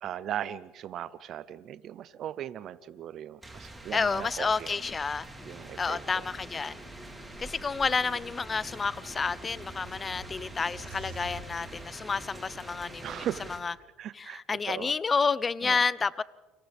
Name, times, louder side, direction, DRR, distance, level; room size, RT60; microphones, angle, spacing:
voice 1, 0.0-4.8 5.4-6.0 13.0-13.5 14.0-14.9 15.6-15.8, right 10 dB, 55° right, 0.6 m, -38 dB
sound 1, 3.4-13.6, right 2 dB, 10° right, 3.7 m, -46 dB
voice 2, 3.9-5.3 5.8-6.7 7.4-13.7 14.1-16.2, left 5 dB, 25° left, 0.6 m, -30 dB
sound 2, 5.4-13.6, left 1 dB, 10° left, 3.6 m, -50 dB
sound 3, 7.6-12.7, right 4 dB, 80° right, 6.0 m, -49 dB
29.0 x 25.5 x 3.5 m
supercardioid pair, 90°, 0 cm